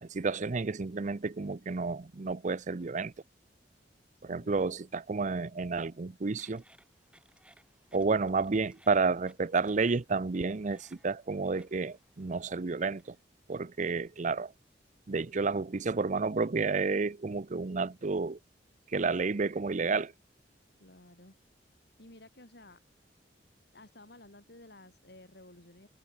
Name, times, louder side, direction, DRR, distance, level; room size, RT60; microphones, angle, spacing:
voice 1, 0.0-3.1 4.2-6.6 7.9-13.2 13.5-14.5 15.1-18.4 18.9-20.1, right 4 dB, 45° right, 0.6 m, -31 dB
sound 1, 6.3-13.2, right 1 dB, 5° right, 7.5 m, -64 dB
voice 2, 20.8-21.4 22.0-22.8 23.7-25.9, left 1 dB, 65° left, 7.1 m, -54 dB
head